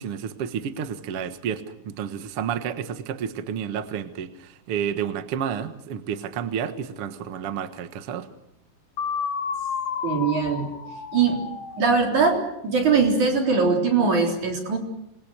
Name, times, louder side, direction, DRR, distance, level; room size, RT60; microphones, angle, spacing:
voice 1, 0.0-8.3, right 8 dB, 85° right, 10 dB, 1.2 m, -30 dB
sound 1, 9.0-12.8, left 7 dB, 60° left, 3.2 m, -32 dB
voice 2, 10.0-10.7 11.1-11.4 11.8-14.8, right 5 dB, 45° right, 2 dB, 5.0 m, -21 dB
27.0 x 21.5 x 6.6 m, 0.80 s
omnidirectional pair, 5.0 m